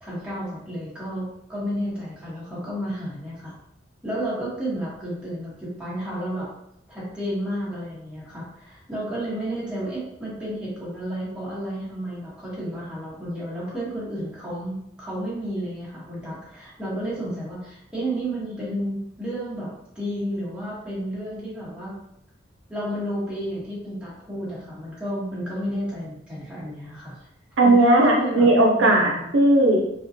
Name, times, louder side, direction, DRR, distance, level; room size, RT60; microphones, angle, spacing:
voice 1, 0.0-3.5 4.0-6.5 6.9-22.0 22.7-27.2 27.6-28.5 28.8-29.3, equal, 5° right, -9 dB, 0.9 m, -31 dB
voice 2, 27.6-29.8, right 1 dB, 90° right, 0 dB, 0.5 m, -17 dB
2.4 x 2.2 x 2.6 m, 0.79 s
head